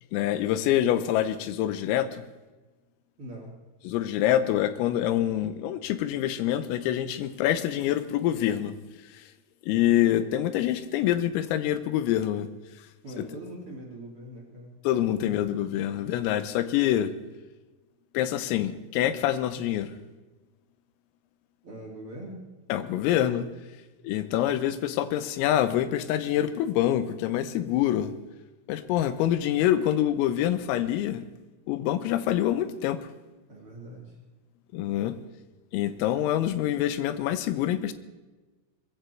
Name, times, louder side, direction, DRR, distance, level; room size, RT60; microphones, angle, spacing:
voice 1, 0.1-2.2 3.9-8.8 9.6-12.5 13.2-13.3 14.9-17.1 18.2-20.0 22.7-23.5 24.1-28.1 28.7-31.3 31.7-33.0 34.7-35.2 35.7-37.9, left 12 dB, 85° left, 13 dB, 3.6 m, -26 dB
voice 2, 3.2-3.5 7.2-7.3 13.0-14.7 15.2-15.4 21.6-22.4 33.5-34.2, right 1 dB, 30° right, -3 dB, 3.0 m, -42 dB
21.5 x 15.0 x 4.6 m, 1.2 s
omnidirectional pair, 6.0 m